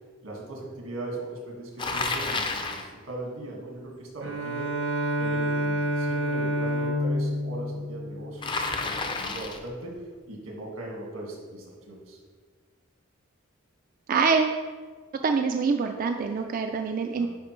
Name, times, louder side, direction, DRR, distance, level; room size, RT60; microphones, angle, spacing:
voice 1, 0.2-4.7 5.2-10.0 10.3-12.2 17.1-17.3, right 2 dB, 85° right, -2 dB, 1.8 m, -39 dB
Bicycle, 1.8-2.9 8.4-9.7, left 3 dB, 25° left, 0.5 m, -30 dB
Bowed string instrument, 4.2-8.8, equal, 65° right, 0.8 m, -28 dB
voice 2, 14.1-14.6 15.2-17.3, right 5 dB, 45° right, 5 dB, 0.3 m, -25 dB
10.0 x 4.3 x 3.1 m, 1.5 s
head